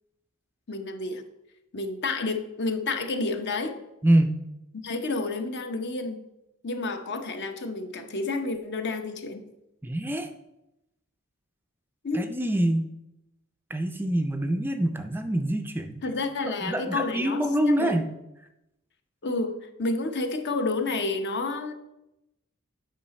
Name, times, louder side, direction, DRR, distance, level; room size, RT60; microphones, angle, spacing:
voice 1, 0.7-1.2 1.7-3.8 4.8-6.2 6.6-9.4 12.0-12.3 16.0-18.0 19.2-21.7, left 3 dB, 55° left, 7 dB, 0.8 m, -30 dB
voice 2, 4.0-4.4 9.8-10.3 12.1-12.9 13.7-16.0 16.6-18.1, right 1 dB, 10° right, 7 dB, 0.4 m, -25 dB
8.6 x 5.7 x 4.2 m, 0.91 s
head